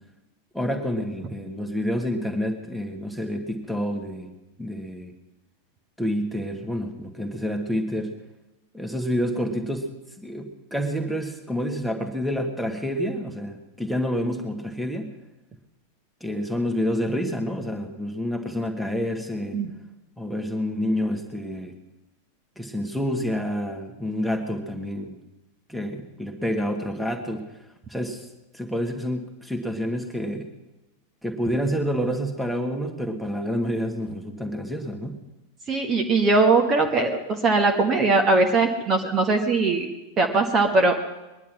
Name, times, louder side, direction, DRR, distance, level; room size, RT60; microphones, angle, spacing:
voice 1, 0.5-4.3 4.6-5.1 6.0-8.1 8.7-9.9 10.2-15.1 16.2-19.6 20.2-21.7 22.6-25.2 25.7-27.5 27.9-28.3 28.5-30.5 31.2-35.2, equal, ahead, 5 dB, 1.9 m, -28 dB
voice 2, 35.7-39.9 40.2-41.0, right 3 dB, 25° right, 3 dB, 1.5 m, -20 dB
21.5 x 10.5 x 6.1 m, 1.0 s
figure-of-eight pair, 90°, 0 cm